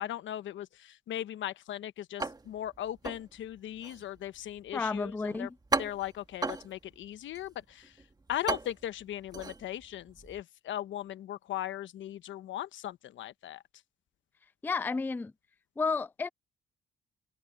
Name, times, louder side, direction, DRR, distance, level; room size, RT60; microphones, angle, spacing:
voice 1, 0.0-5.5 5.8-8.0 8.3-13.6, left 12 dB, 75° left, 1.0 m, -38 dB
sound 1, 2.2-10.4, right 3 dB, 20° right, 1.6 m, -38 dB
voice 2, 4.7-5.6 14.6-15.3 15.8-16.3, left 4 dB, 10° left, 0.3 m, -31 dB
cardioid pair, 90°, 20 cm